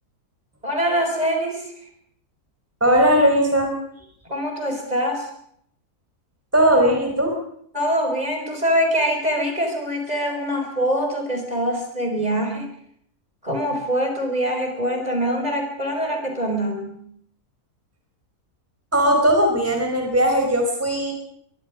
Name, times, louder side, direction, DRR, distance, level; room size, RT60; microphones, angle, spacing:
voice 1, 0.6-1.7 4.2-5.3 7.7-12.7 13.4-17.0, equal, 25° right, 3 dB, 4.9 m, -24 dB
voice 2, 2.8-3.7 6.5-7.3 18.9-21.1, equal, 10° right, 2 dB, 4.5 m, -18 dB
23.5 x 23.5 x 5.2 m, 0.66 s
omnidirectional pair, 1.6 m